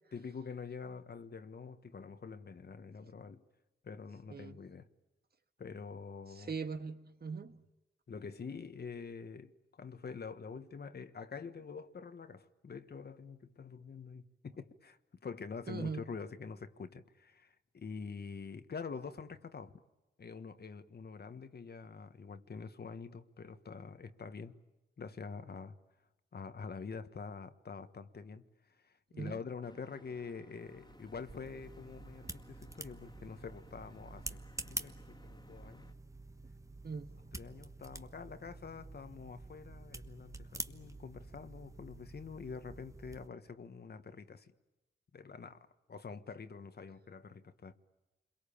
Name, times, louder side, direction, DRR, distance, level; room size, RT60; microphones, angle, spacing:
voice 1, 0.1-3.4 3.8-4.9 5.6-6.5 8.1-19.8 20.2-24.5 25.0-25.8 26.3-28.4 28.7-35.9 37.3-44.5 45.1-47.8, left 5 dB, 55° left, 1.5 m, -46 dB
voice 2, 6.4-7.5 15.7-16.0 29.1-29.4 36.8-37.1, right 5 dB, 55° right, 1.6 m, -40 dB
sound 1, 29.6-35.9, left 1 dB, 20° left, 2.2 m, -61 dB
sound 2, 30.6-43.3, right 2 dB, 15° right, 1.2 m, -48 dB
28.5 x 22.5 x 8.7 m
cardioid pair, 85°, 20 cm